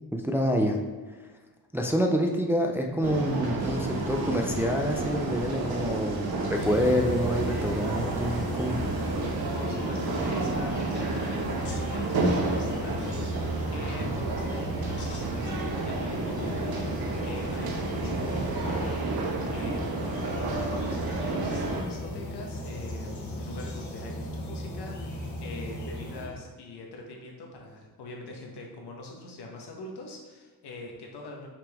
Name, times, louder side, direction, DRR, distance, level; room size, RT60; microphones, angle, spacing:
voice 1, 0.1-0.8 1.7-8.8, equal, 5° right, 2 dB, 0.3 m, -27 dB
sound 1, 3.0-21.8, right 2 dB, 70° right, 1.1 m, -31 dB
sound 2, 3.6-9.7, right 2 dB, 40° right, 1.5 m, -52 dB
sound 3, 6.5-26.3, equal, 50° left, 1.2 m, -35 dB
voice 2, 9.5-19.2 19.5-31.5, left 2 dB, 85° left, 0 dB, 1.3 m, -43 dB
5.9 x 5.0 x 3.5 m, 1.3 s
wide cardioid pair, 155°, 39 cm